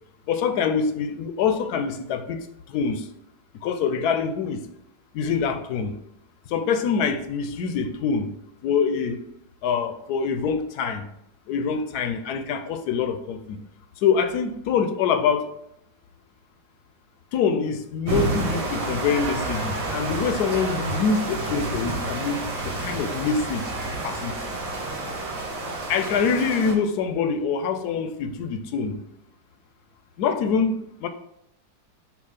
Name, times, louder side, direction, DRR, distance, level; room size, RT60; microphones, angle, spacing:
voice 1, 0.3-2.4 2.7-3.1 3.6-4.6 5.1-6.0 6.5-8.3 8.6-9.2 9.6-11.0 11.5-13.6 14.0-15.5 17.3-23.7 24.0-24.7 25.9-29.0 30.2-31.1, left 6 dB, 70° left, 9 dB, 0.9 m, -25 dB
sound 1, 18.1-26.7, right 2 dB, 85° right, 2.4 m, -29 dB
7.1 x 2.4 x 5.6 m, 0.80 s
omnidirectional pair, 2.0 m